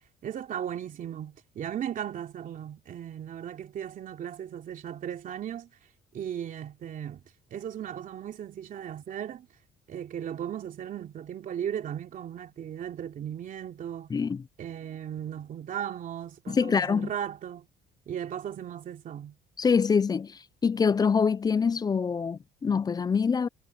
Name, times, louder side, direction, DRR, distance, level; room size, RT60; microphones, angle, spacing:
voice 1, 0.2-5.7 6.1-7.2 7.5-9.5 9.9-14.1 14.6-17.7 18.1-19.4, right 9 dB, 55° right, 3.1 m, -36 dB
voice 2, 14.1-14.4 16.5-17.1 19.6-20.3 20.6-23.5, left 5 dB, 25° left, 0.4 m, -25 dB
cardioid pair, 110°, 17 cm